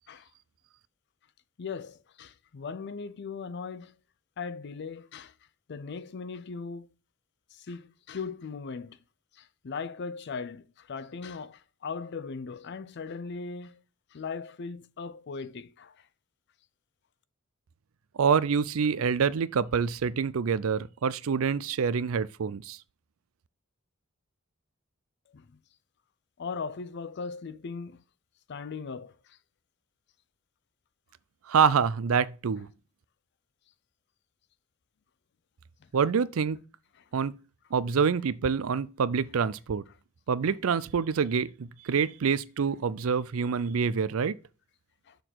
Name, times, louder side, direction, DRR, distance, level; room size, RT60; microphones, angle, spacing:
voice 1, 1.6-4.0 4.4-5.3 5.7-6.9 7.5-9.0 9.3-13.8 14.1-16.0 25.3-25.5 26.4-28.0 28.5-29.4 35.8-35.9 37.0-37.1 45.1-45.2, left 5 dB, 55° left, 0.5 m, -39 dB
voice 2, 18.2-22.8 31.5-32.7 35.9-36.6 37.1-37.4 37.7-39.8 40.3-44.4, right 6 dB, 75° right, 0.5 m, -26 dB
6.9 x 3.9 x 6.2 m
head